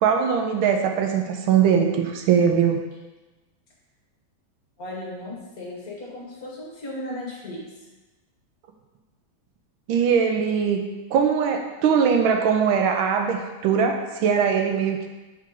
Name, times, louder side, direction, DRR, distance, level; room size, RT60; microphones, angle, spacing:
voice 1, 0.0-2.8 9.9-10.8 11.1-15.1, right 7 dB, 80° right, 4 dB, 1.5 m, -21 dB
voice 2, 4.8-7.7, left 1 dB, 50° left, -4 dB, 1.5 m, -35 dB
6.0 x 4.4 x 3.7 m, 1.2 s
omnidirectional pair, 2.3 m